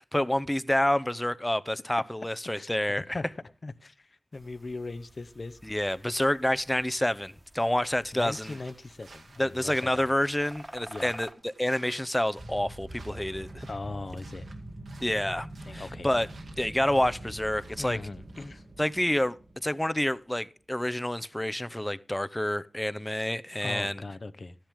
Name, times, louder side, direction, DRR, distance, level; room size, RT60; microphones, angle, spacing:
voice 1, 0.0-3.0 5.6-8.6 9.4-13.7 15.0-15.5 15.7-16.3 16.6-18.0 18.8-19.4 19.6-24.0, left 1 dB, 10° left, 0.6 m, -28 dB
voice 2, 3.0-3.3 3.6-5.6 8.1-10.1 10.9-11.1 13.7-14.5 15.6-16.1 17.8-18.6 23.6-24.6, left 3 dB, 50° left, 0.8 m, -39 dB
sound 1, 4.3-11.3, right 1 dB, 15° right, 1.3 m, -51 dB
sound 2, 8.2-18.7, right 3 dB, 85° right, 2.1 m, -56 dB
sound 3, 12.4-20.1, right 1 dB, 60° right, 2.4 m, -44 dB
13.5 x 10.5 x 3.6 m
wide cardioid pair, 65°, 0 cm